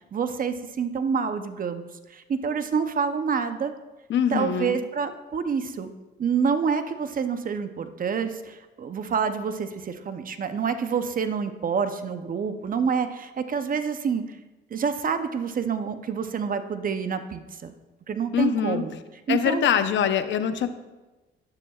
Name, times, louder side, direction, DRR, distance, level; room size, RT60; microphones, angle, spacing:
voice 1, 0.1-3.7 4.3-5.9 6.2-14.4 14.7-17.7 18.1-18.9 19.3-19.6, right 6 dB, 45° right, 9 dB, 0.7 m, -27 dB
voice 2, 4.1-4.8 18.3-18.8 19.3-20.7, left 8 dB, 70° left, 9 dB, 0.8 m, -23 dB
13.0 x 9.8 x 2.4 m, 1.1 s
cardioid pair, 90°, 20 cm